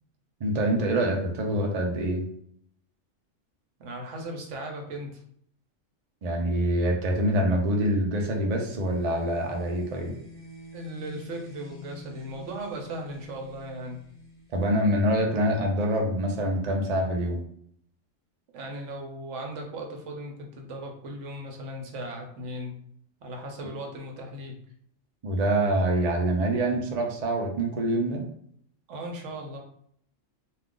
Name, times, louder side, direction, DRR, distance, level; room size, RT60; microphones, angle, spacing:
voice 1, 0.4-2.2 6.2-10.1 14.5-17.4 25.2-28.2, right 1 dB, 55° right, 1 dB, 0.4 m, -25 dB
voice 2, 3.8-5.2 10.7-14.0 18.5-22.7 23.2-24.6 28.9-29.6, right 1 dB, 70° right, 2 dB, 1.0 m, -37 dB
sound 1, 8.5-15.2, equal, 20° right, 0.7 m, -47 dB
2.4 x 2.4 x 3.6 m, 0.67 s
omnidirectional pair, 1.3 m